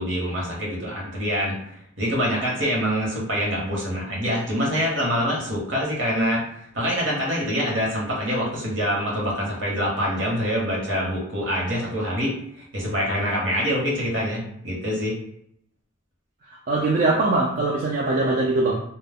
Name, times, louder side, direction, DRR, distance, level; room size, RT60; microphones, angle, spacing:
voice 1, 0.0-1.6 2.0-6.4 6.7-15.2, equal, 60° right, -4 dB, 1.0 m, -25 dB
voice 2, 16.5-18.8, right 2 dB, 40° right, -3 dB, 0.3 m, -22 dB
2.2 x 2.0 x 3.4 m, 0.72 s
head